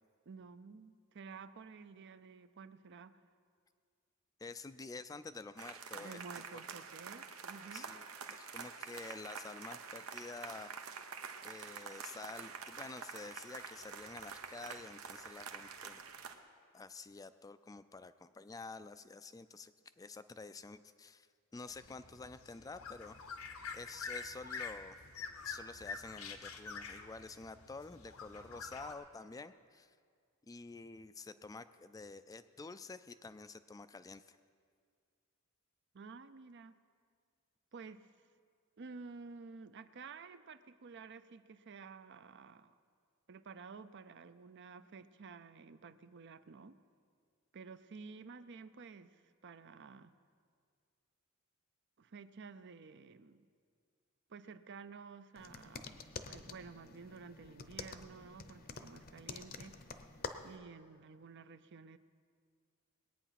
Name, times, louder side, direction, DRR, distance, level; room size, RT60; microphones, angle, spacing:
voice 1, 0.3-3.2 5.9-7.9 35.9-36.8 37.7-38.1 38.8-42.7 43.3-46.8 47.5-50.1 52.0-53.5 54.3-59.9 60.4-62.0, right 5 dB, 55° right, 12 dB, 0.6 m, -52 dB
voice 2, 4.4-6.2 7.7-10.8 11.4-16.0 16.7-21.3 21.5-23.2 23.7-25.0 25.4-29.9 30.5-34.4, left 3 dB, 15° left, 12 dB, 0.3 m, -49 dB
sound 1, 5.6-16.4, right 6 dB, 90° right, 0.9 m, -47 dB
sound 2, 21.7-28.9, left 5 dB, 85° left, 1.0 m, -47 dB
sound 3, 55.4-60.6, left 4 dB, 45° left, 0.7 m, -48 dB
20.0 x 9.0 x 5.8 m, 2.1 s
head